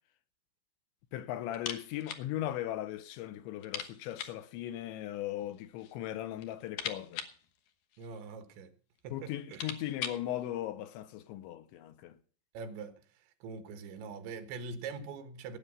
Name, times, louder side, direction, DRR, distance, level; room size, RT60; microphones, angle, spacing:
voice 1, 1.1-7.3 9.1-12.2, left 13 dB, 85° left, 3.3 m, -38 dB
sound 1, 1.5-2.3 2.6-2.7 3.0-3.1 3.6-4.5 5.4-6.0 6.3-8.3 9.0-9.1 9.3-10.3, left 8 dB, 70° left, 2.1 m, -42 dB
voice 2, 8.0-8.7 9.0-9.8 12.6-13.0 13.4-15.6, right 4 dB, 80° right, 3.7 m, -43 dB
17.5 x 8.8 x 5.6 m
omnidirectional pair, 5.2 m